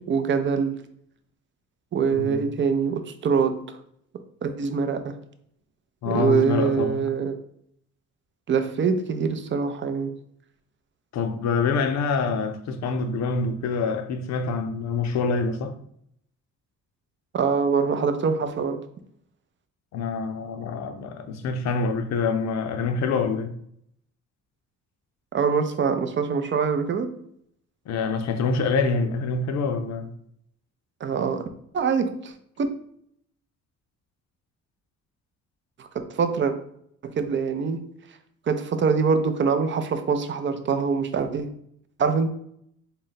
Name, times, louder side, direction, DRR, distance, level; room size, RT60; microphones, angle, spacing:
voice 1, 0.1-0.8 1.9-3.8 4.4-5.2 6.1-7.4 8.5-10.1 17.3-18.8 25.3-27.1 31.0-31.5 31.7-32.3 32.6-32.7 35.8-35.9 36.1-36.5 37.0-37.8 38.5-41.5 42.0-42.3, right 5 dB, 40° right, 0.5 m, -24 dB
voice 2, 6.0-7.0 11.1-15.8 19.9-23.6 27.9-30.1, left 4 dB, 65° left, 0.5 m, -26 dB
3.8 x 2.2 x 3.9 m
cardioid pair, 90°, 30 cm